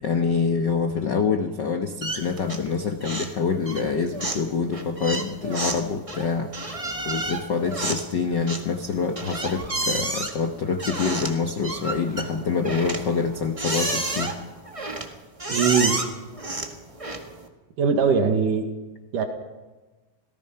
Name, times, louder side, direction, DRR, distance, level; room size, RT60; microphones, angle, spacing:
voice 1, 0.0-6.5 7.0-14.4, left 5 dB, 80° left, 6 dB, 0.9 m, -26 dB
sound 1, 2.0-2.7 3.0-3.4 3.7-17.5, right 2 dB, 35° right, 0.5 m, -31 dB
voice 2, 15.5-16.0 17.8-18.6 19.1-19.3, right 6 dB, 75° right, 5 dB, 3.2 m, -21 dB
26.5 x 18.0 x 5.8 m, 1.2 s
omnidirectional pair, 3.8 m